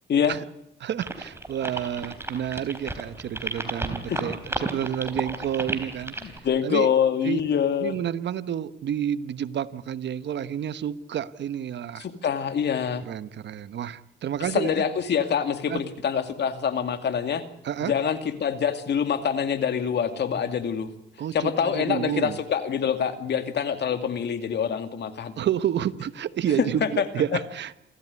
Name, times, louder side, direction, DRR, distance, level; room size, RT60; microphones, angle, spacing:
voice 1, 0.8-6.3 6.6-6.9 7.2-7.4 7.8-12.1 13.1-14.8 15.7-15.8 17.6-17.9 21.2-22.4 25.4-27.8, right 9 dB, 65° right, 14 dB, 1.2 m, -30 dB
sound 1, 1.0-6.4, right 2 dB, 10° right, 3.8 m, -32 dB
voice 2, 6.2-8.0 12.0-13.0 14.5-17.4 17.8-20.9 21.3-25.3 26.6-27.0 27.3-27.4, left 7 dB, 60° left, 8 dB, 2.5 m, -25 dB
28.0 x 14.0 x 9.6 m, 0.82 s
cardioid pair, 90°, 20 cm